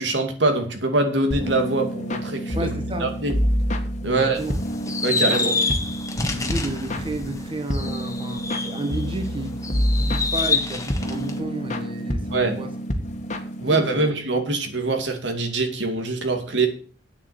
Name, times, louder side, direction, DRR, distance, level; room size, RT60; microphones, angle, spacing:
voice 1, 0.0-2.7 3.0-3.3 4.0-4.4 5.0-5.5 12.3-12.5 13.6-16.7, right 2 dB, 90° right, 5 dB, 2.4 m, -23 dB
sound 1, 1.3-14.1, equal, 40° left, 1.6 m, -28 dB
voice 2, 2.5-3.1 4.1-4.6 5.1-5.7 6.3-12.7 13.6-14.1, right 1 dB, 30° right, 6 dB, 1.7 m, -32 dB
sound 2, 4.4-9.2 9.6-11.4, left 3 dB, 20° left, 1.4 m, -27 dB
8.8 x 7.2 x 8.2 m, 0.43 s
head